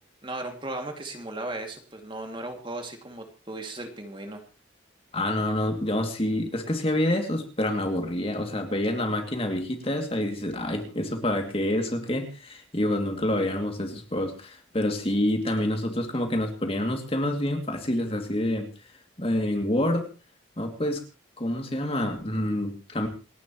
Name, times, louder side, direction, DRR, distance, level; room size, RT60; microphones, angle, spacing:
voice 1, 0.2-4.4, right 2 dB, 25° right, 4 dB, 2.4 m, -36 dB
voice 2, 5.1-18.7 19.2-20.1 20.6-21.0 21.4-23.1, left 1 dB, 30° left, 4 dB, 2.6 m, -27 dB
28.0 x 11.5 x 3.1 m, 0.31 s
head